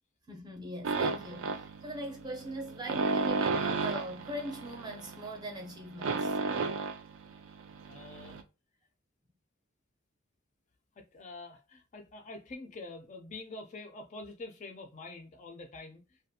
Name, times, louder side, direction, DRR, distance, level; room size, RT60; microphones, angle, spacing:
voice 1, 0.3-6.4, right 1 dB, 20° right, 0.5 m, -41 dB
sound 1, 0.8-8.4, right 4 dB, 80° right, 0.4 m, -33 dB
voice 2, 7.9-8.4 11.0-16.3, left 2 dB, 35° left, 0.4 m, -46 dB
2.4 x 2.2 x 2.6 m
head